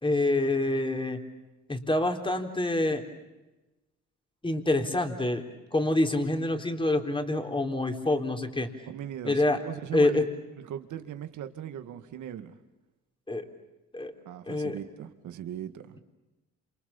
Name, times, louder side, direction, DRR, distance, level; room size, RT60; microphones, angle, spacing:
voice 1, 0.0-1.2 1.7-3.0 4.4-5.4 5.7-8.7 9.2-9.6 9.9-10.3 13.3-13.5 13.9-14.1 14.5-14.8, left 2 dB, 15° left, 5 dB, 3.9 m, -26 dB
voice 2, 8.9-10.3 10.7-12.6 14.3-16.0, right 10 dB, 75° right, 9 dB, 2.0 m, -39 dB
28.5 x 28.0 x 7.2 m, 1.1 s
cardioid pair, 90°, 30 cm